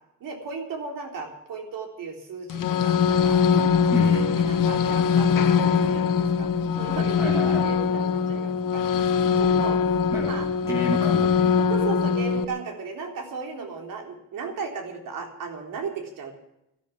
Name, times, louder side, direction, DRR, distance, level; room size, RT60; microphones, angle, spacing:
voice 1, 0.2-3.7 4.0-6.5 6.8-9.8 10.3-10.5 11.7-16.4, right 5 dB, 85° right, 3 dB, 3.8 m, -35 dB
sound 1, 2.5-12.4, left 6 dB, 80° left, 1.2 m, -22 dB
voice 2, 3.9-4.4 7.2-7.7 10.1-11.6, right 1 dB, 10° right, 0 dB, 2.4 m, -31 dB
12.5 x 12.0 x 8.3 m, 0.83 s
cardioid pair, 120°, 32 cm